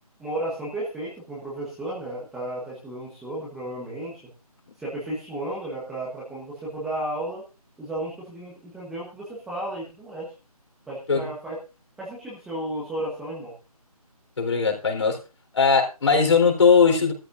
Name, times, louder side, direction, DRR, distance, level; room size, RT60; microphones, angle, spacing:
voice 1, 0.2-4.2 4.8-7.4 7.8-10.3 10.9-11.6 12.0-13.5, right 1 dB, ahead, -7 dB, 1.1 m, -33 dB
voice 2, 14.4-15.2 15.5-17.1, left 5 dB, 50° left, 2 dB, 4.1 m, -19 dB
16.5 x 13.0 x 2.6 m, 0.30 s
figure-of-eight pair, 165°, 20 cm